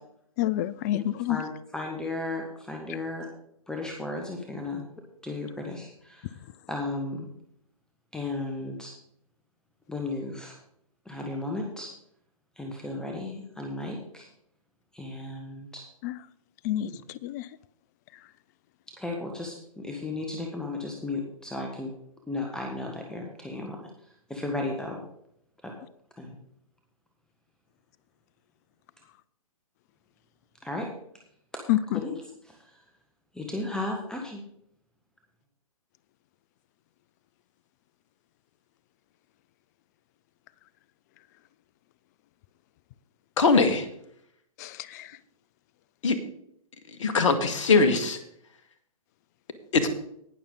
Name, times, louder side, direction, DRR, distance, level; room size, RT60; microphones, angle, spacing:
voice 1, 0.4-1.4 16.0-16.1 16.6-17.5 31.7-32.0 44.6-45.2, left 13 dB, 30° left, 20 dB, 0.4 m, -28 dB
voice 2, 1.3-3.3 3.7-4.8 5.2-6.3 6.7-7.3 8.1-8.9 9.9-10.5 11.0-11.9 12.6-14.3 14.9-15.8 16.8-16.9 19.0-21.9 22.3-23.8 24.3-25.0 25.6-25.7 26.2-26.3 30.6-30.9 31.9-32.1 33.3-34.4, left 2 dB, 5° left, 1 dB, 1.4 m, -34 dB
voice 3, 43.4-43.8 46.0-46.2 47.0-48.2 49.7-49.9, left 4 dB, 60° left, 9 dB, 1.7 m, -21 dB
18.5 x 6.9 x 3.9 m, 0.72 s
figure-of-eight pair, 120°, 18 cm